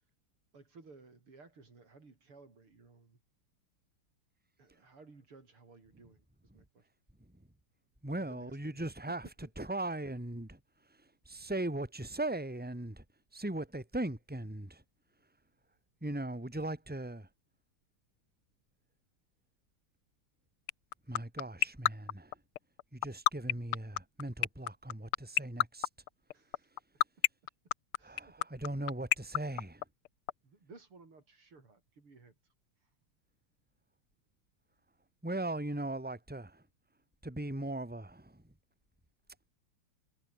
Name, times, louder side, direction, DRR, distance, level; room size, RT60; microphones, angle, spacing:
voice 1, 0.5-3.2 4.6-6.3 6.5-6.8 8.1-9.7 26.3-26.7 28.0-28.5 30.4-32.4 32.8-32.9, right 3 dB, 80° right, 5.8 m, -57 dB
voice 2, 8.0-9.3 9.6-10.6 11.3-13.0 13.3-14.8 16.0-17.3 21.1-22.3 22.9-25.9 28.0-29.8 35.2-36.6 37.2-38.4, right 1 dB, 5° right, 3.2 m, -38 dB
sound 1, 20.7-30.3, left 16 dB, 85° left, 1.5 m, -26 dB
omnidirectional pair, 2.4 m